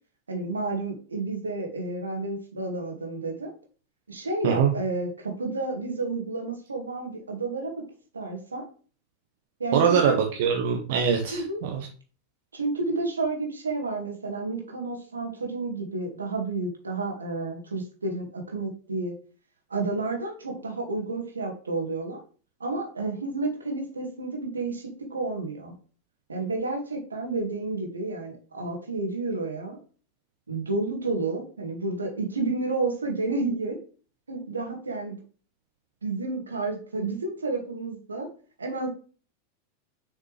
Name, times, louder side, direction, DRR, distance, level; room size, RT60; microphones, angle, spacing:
voice 1, 0.3-3.5 4.1-7.7 8.1-8.7 9.6-10.2 11.3-11.6 12.5-19.1 19.7-22.2 22.6-25.7 26.3-29.8 30.5-33.8 34.3-35.2 36.0-38.3 38.6-38.9, right 3 dB, 75° right, 2 dB, 2.0 m, -31 dB
voice 2, 9.7-11.9, right 7 dB, 50° right, 2 dB, 1.1 m, -23 dB
6.6 x 5.7 x 3.3 m, 0.39 s
figure-of-eight pair, 90°, 0 cm